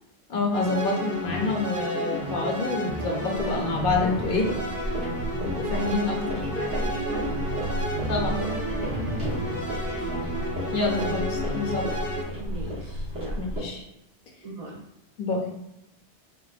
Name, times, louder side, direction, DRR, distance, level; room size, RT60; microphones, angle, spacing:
voice 1, 0.3-4.5 5.4-6.1 8.1-8.4 10.7-11.9 13.4-13.8 15.2-15.4, left 3 dB, 55° left, 1 dB, 0.8 m, -27 dB
sound 1, 0.5-12.2, equal, 15° right, 0.7 m, -31 dB
sound 2, 3.3-13.6, equal, 80° right, 1.4 m, -33 dB
voice 2, 5.7-7.4 8.2-10.1 10.9-11.2 12.4-13.5 14.4-14.8, right 2 dB, 55° right, -4 dB, 0.4 m, -37 dB
3.8 x 2.1 x 2.3 m, 0.86 s
omnidirectional pair, 1.2 m